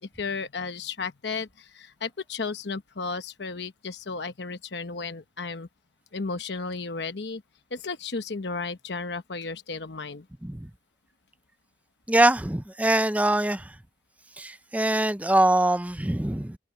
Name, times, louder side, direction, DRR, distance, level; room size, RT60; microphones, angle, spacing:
voice 1, 0.0-5.7 6.1-7.4 7.7-10.3, left 4 dB, 70° left, 1.0 m, -34 dB
voice 2, 12.1-13.6 14.4-16.6, right 1 dB, 10° right, 0.6 m, -23 dB
head